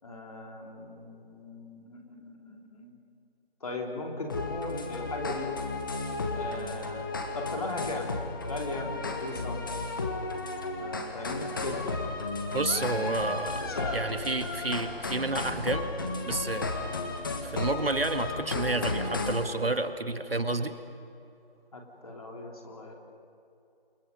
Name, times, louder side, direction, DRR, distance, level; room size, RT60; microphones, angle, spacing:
voice 1, 0.0-2.9 3.6-5.5 6.3-7.1 7.3-8.1 8.5-9.6 10.8-11.9 12.7-14.0 21.7-22.9, left 2 dB, 40° left, 1 dB, 3.5 m, -38 dB
sound 1, 4.3-19.5, left 3 dB, 20° left, 1.4 m, -34 dB
voice 2, 12.5-13.7 13.9-15.9 16.3-16.7 17.4-20.7, right 2 dB, 70° right, 8 dB, 1.8 m, -30 dB
28.5 x 27.5 x 5.4 m, 2.7 s
figure-of-eight pair, 165°, 30 cm